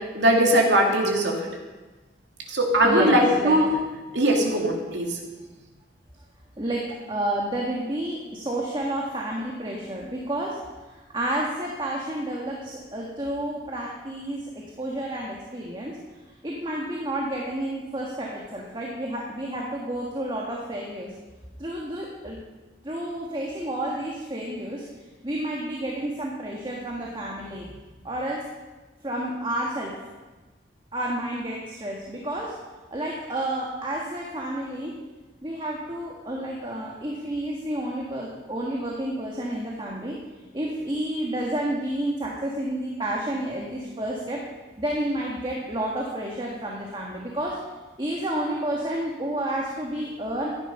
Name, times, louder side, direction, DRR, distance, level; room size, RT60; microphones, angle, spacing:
voice 1, 0.1-1.4 2.5-3.7 4.1-5.2, right 1 dB, 85° right, 0 dB, 2.6 m, -20 dB
voice 2, 2.8-3.6 6.6-6.8 7.1-10.6 10.9-14.4 14.8-16.0 16.4-21.1 21.6-22.4 22.8-24.8 25.2-27.6 28.0-28.4 29.0-29.9 30.9-32.5 32.9-34.9 35.4-40.2 40.5-44.4 44.8-47.6 48.0-50.5, right 1 dB, 25° right, -2 dB, 1.6 m, -30 dB
14.5 x 10.5 x 5.4 m, 1.2 s
head